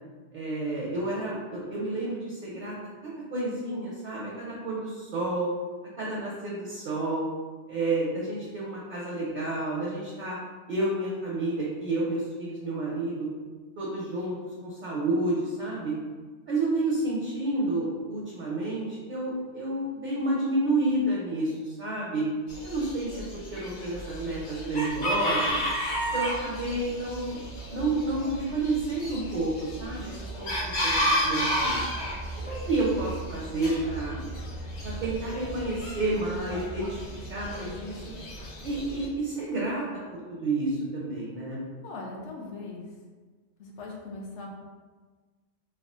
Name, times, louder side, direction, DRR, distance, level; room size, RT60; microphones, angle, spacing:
voice 1, 0.3-2.7 3.0-5.5 6.0-7.3 7.7-10.4 10.7-13.3 13.8-15.9 16.5-22.3 22.6-25.6 26.1-27.4 27.7-31.8 32.4-34.3 34.8-37.0 37.3-38.0 38.6-39.9 40.1-41.6, right 2 dB, 55° right, -4 dB, 0.5 m, -30 dB
Chicken rooster, 22.5-39.1, equal, 50° left, 0.8 m, -32 dB
voice 2, 41.8-42.9 43.6-44.5, left 3 dB, 80° left, -1 dB, 0.9 m, -39 dB
3.5 x 2.1 x 2.4 m, 1.4 s
omnidirectional pair, 1.2 m